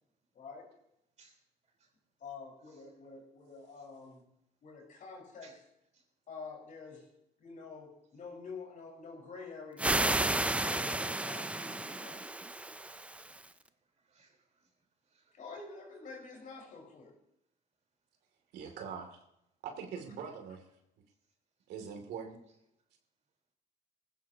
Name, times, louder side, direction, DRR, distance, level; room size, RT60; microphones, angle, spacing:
voice 1, 0.3-0.7 2.2-4.2 4.6-5.5 6.3-7.0 7.4-12.2 15.3-17.1, left 4 dB, 50° left, 0 dB, 4.8 m, -48 dB
sound 1, 9.8-13.5, right 2 dB, 5° right, 0.5 m, -32 dB
voice 2, 12.8-13.6 14.0-14.7 15.1-15.4 16.1-16.3, right 4 dB, 45° right, 1 dB, 3.9 m, -64 dB
voice 3, 18.5-19.2 19.6-20.6 21.7-22.4, right 6 dB, 80° right, 4 dB, 2.6 m, -42 dB
19.0 x 16.0 x 2.9 m, 0.81 s
cardioid pair, 110°, 17 cm